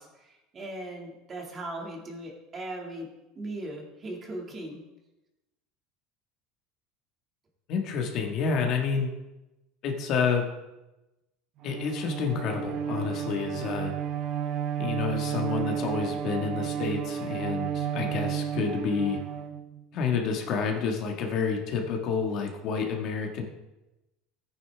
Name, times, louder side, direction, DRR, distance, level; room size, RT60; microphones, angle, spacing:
voice 1, 0.0-3.1 3.4-4.8, right 1 dB, 25° right, 1 dB, 2.1 m, -38 dB
voice 2, 7.7-9.1 9.8-10.4 11.6-13.9 14.8-19.2 19.9-23.4, left 5 dB, 45° left, 2 dB, 1.6 m, -29 dB
Bowed string instrument, 11.6-20.0, right 8 dB, 40° right, 0.8 m, -32 dB
15.0 x 9.4 x 3.5 m, 0.98 s
cardioid pair, 155°, 0 cm